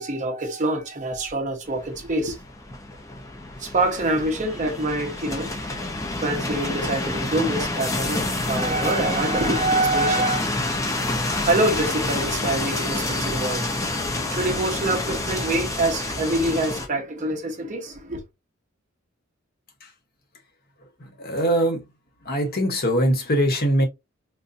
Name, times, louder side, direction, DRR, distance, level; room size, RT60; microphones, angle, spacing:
voice 1, 0.0-2.4 3.6-5.7 6.2-10.4 11.4-18.2, right 2 dB, 35° right, 0.7 m, -25 dB
sound 1, 1.7-16.9, left 2 dB, 15° left, 0.5 m, -28 dB
voice 2, 21.0-21.8 22.2-23.9, equal, 50° left, 0.9 m, -22 dB
3.9 x 2.2 x 2.6 m
head